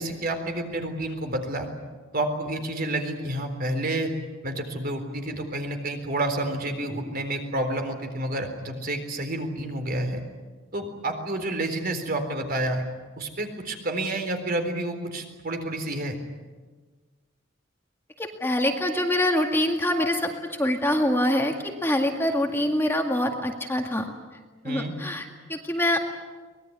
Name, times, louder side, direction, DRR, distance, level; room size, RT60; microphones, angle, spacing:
voice 1, 0.0-1.7 2.1-4.1 4.4-10.2 10.7-12.8 13.2-16.2 24.6-24.9, right 1 dB, 50° right, 5 dB, 4.0 m, -29 dB
voice 2, 18.2-24.1 24.6-26.0, left 1 dB, 10° left, 3 dB, 2.0 m, -25 dB
24.5 x 20.0 x 9.6 m, 1.4 s
head